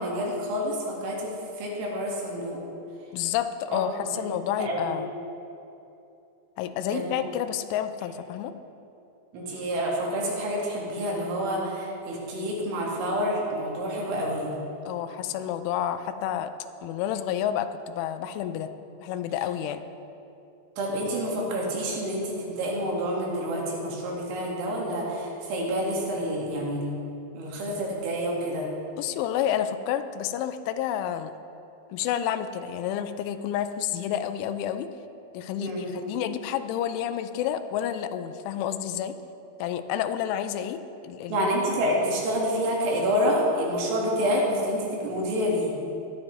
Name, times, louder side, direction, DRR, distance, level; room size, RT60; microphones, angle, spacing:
voice 1, 0.0-1.3 1.6-2.6 3.7-3.8 4.6-4.9 6.9-7.0 9.3-14.5 20.8-26.9 27.4-28.7 35.6-35.9 41.3-45.7, equal, 80° right, -3 dB, 4.2 m, -28 dB
voice 2, 3.1-5.1 6.6-8.5 14.9-16.5 16.8-18.7 19.0-19.8 29.0-31.3 31.9-34.9 35.3-39.2 39.6-41.5, left 10 dB, 85° left, 10 dB, 3.0 m, -30 dB
17.0 x 12.0 x 3.2 m, 2.8 s
omnidirectional pair, 5.5 m